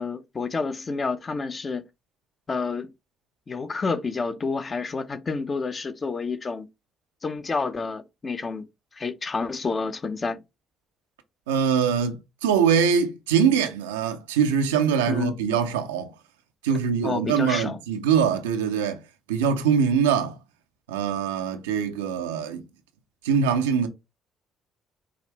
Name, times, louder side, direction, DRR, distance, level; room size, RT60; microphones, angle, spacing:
voice 1, 0.0-1.8 2.5-2.9 3.5-6.7 7.2-8.6 8.9-10.4 15.1-15.4 16.7-16.8 17.0-17.8, left 4 dB, 35° left, 0.7 m, -29 dB
voice 2, 11.5-16.1 16.6-19.0 19.3-20.4 20.9-22.6 23.2-23.9, right 7 dB, 80° right, 0.5 m, -23 dB
4.8 x 2.5 x 3.3 m
hypercardioid pair, 50°, 0 cm